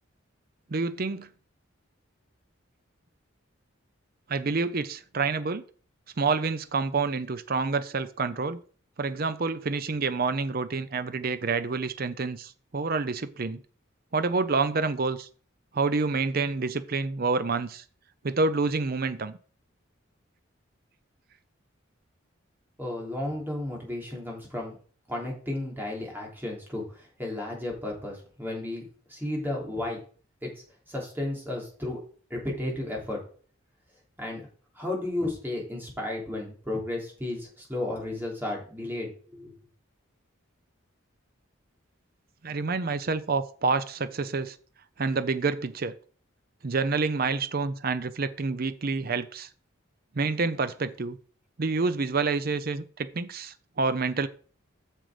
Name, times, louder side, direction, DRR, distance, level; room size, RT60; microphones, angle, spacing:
voice 1, 0.7-1.3 4.3-5.6 6.2-8.6 9.0-13.6 14.1-15.3 15.7-17.8 18.2-19.3 42.4-44.6 45.0-45.9 46.6-49.5 50.2-51.2 51.6-54.3, right 4 dB, 45° right, 12 dB, 0.6 m, -28 dB
voice 2, 22.8-24.7 25.1-30.0 30.4-30.5 30.9-32.0 32.3-33.2 34.2-34.4 34.8-39.5, left 1 dB, 10° right, -2 dB, 3.2 m, -33 dB
7.4 x 6.6 x 5.0 m, 0.42 s
head